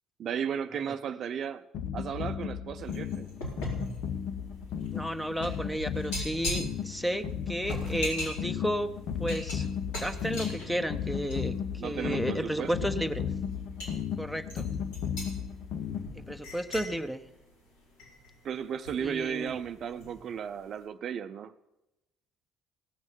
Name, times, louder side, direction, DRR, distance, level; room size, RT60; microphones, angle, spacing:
voice 1, 0.2-1.6 1.9-3.3 11.8-12.9 18.4-21.5, right 8 dB, 55° right, 10 dB, 0.5 m, -35 dB
sound 1, 1.7-16.4, left 8 dB, 65° left, 0.9 m, -35 dB
sound 2, 2.8-11.6 12.0-12.2 12.9-13.0 13.4-13.9 14.5-18.4 18.8-20.2 20.5-20.7, left 1 dB, 80° left, 3.6 m, -40 dB
voice 2, 4.9-8.9 9.2-9.7 10.0-13.2 14.2-14.7 16.3-17.2 19.0-19.6, equal, ahead, 10 dB, 1.0 m, -32 dB
17.0 x 6.2 x 7.3 m, 0.93 s
hypercardioid pair, 55°, 0 cm